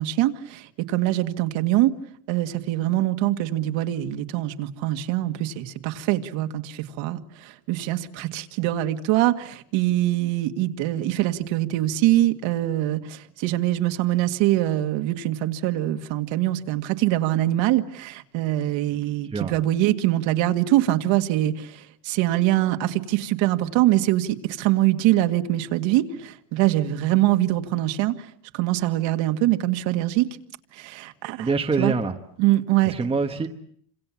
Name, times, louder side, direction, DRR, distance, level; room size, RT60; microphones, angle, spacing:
voice 1, 0.0-1.9 2.3-28.3 28.5-30.3 30.7-31.5 31.8-31.9 32.4-32.9, right 15 dB, 70° right, 2.1 m, -23 dB
voice 2, 31.4-32.1 32.8-33.5, right 4 dB, 10° right, 1.3 m, -25 dB
29.0 x 26.0 x 7.3 m
cardioid pair, 165°, 47 cm